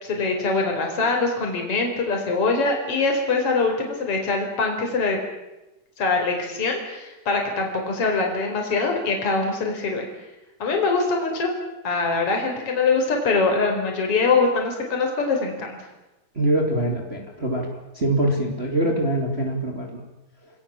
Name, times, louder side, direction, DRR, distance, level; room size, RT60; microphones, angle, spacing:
voice 1, 0.0-5.2 6.0-10.1 10.6-11.5 11.8-15.8, left 3 dB, 40° left, 2 dB, 5.4 m, -23 dB
voice 2, 16.3-17.7 17.9-20.0, right 1 dB, 20° right, 2 dB, 3.1 m, -23 dB
29.0 x 20.5 x 7.4 m, 1.0 s
omnidirectional pair, 4.0 m